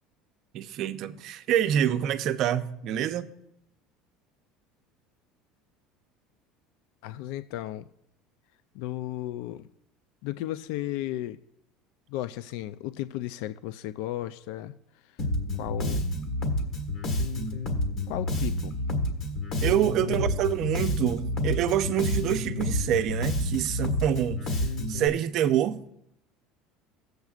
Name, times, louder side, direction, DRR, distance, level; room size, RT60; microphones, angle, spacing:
voice 1, 0.5-3.3 19.6-24.6 24.9-25.8, right 10 dB, 50° right, 0.6 m, -26 dB
voice 2, 7.0-7.9 8.7-9.7 10.2-11.4 12.1-14.7 15.0-15.2 15.6-16.1 18.1-18.8 20.0-20.2, left 14 dB, 70° left, 0.3 m, -34 dB
Bass guitar, 15.2-25.1, left 1 dB, 45° left, 1.6 m, -29 dB
16.5 x 7.8 x 2.4 m
cardioid pair, 150°, 0 cm